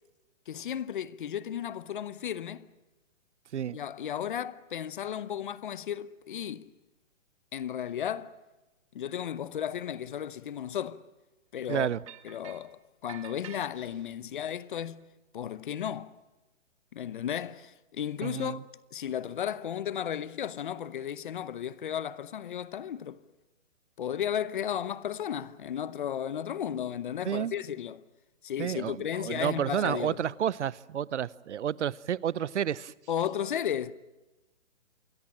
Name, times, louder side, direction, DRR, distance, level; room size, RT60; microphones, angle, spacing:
voice 1, 0.5-2.7 3.7-6.7 7.5-8.3 8.9-11.0 11.5-11.9 12.2-15.1 15.3-16.1 16.9-18.6 18.9-23.2 24.0-28.0 28.4-30.2 33.1-33.9, left 9 dB, 40° left, 0.9 m, -34 dB
voice 2, 11.7-12.0 18.2-18.6 27.2-27.5 28.6-32.9, right 9 dB, 65° right, 0.8 m, -30 dB
sound 1, 12.1-12.7 13.1-14.2, right 13 dB, 25° right, 1.0 m, -48 dB
28.0 x 22.0 x 7.4 m
hypercardioid pair, 160°, 38 cm